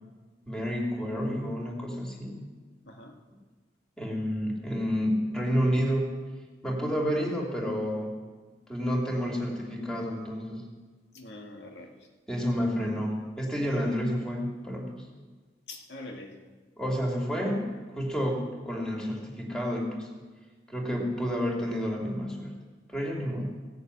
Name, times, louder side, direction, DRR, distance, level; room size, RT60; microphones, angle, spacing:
voice 1, 0.5-2.4 4.0-6.1 6.6-8.1 8.7-10.7 12.3-15.0 16.8-20.1 20.7-22.5 22.9-23.5, equal, 5° left, -1 dB, 2.3 m, -30 dB
voice 2, 2.9-3.2 11.1-12.1 15.7-16.4, left 2 dB, 70° left, 2 dB, 1.9 m, -44 dB
16.0 x 6.8 x 8.3 m, 1.4 s
head